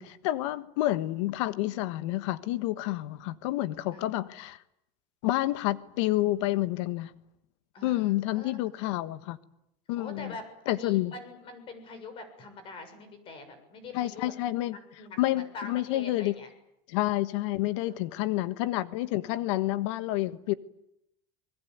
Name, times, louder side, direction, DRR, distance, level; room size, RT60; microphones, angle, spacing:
voice 1, 0.0-4.6 5.2-7.1 7.8-9.4 9.9-10.3 10.7-11.1 13.9-14.8 15.2-16.3 16.9-20.5, left 16 dB, 80° left, 1.4 m, -29 dB
voice 2, 7.7-8.8 10.0-14.3 14.6-16.5 17.8-17.9, left 3 dB, 35° left, 6.9 m, -44 dB
29.5 x 21.0 x 9.5 m
cardioid pair, 155°, 15 cm